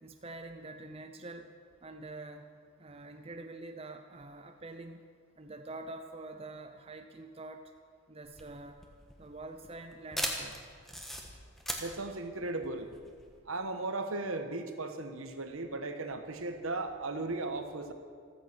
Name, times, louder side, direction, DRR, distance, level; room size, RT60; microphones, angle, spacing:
voice 1, 0.0-1.5 1.8-2.5 2.8-5.0 5.4-7.7 8.1-8.8 9.2-10.6, right 2 dB, 25° right, 6 dB, 0.7 m, -46 dB
sound 1, 8.2-13.4, equal, ahead, 1.4 m, -39 dB
voice 2, 11.8-12.9 13.5-17.9, right 2 dB, 75° right, 7 dB, 1.4 m, -36 dB
15.0 x 14.0 x 6.2 m, 2.1 s
head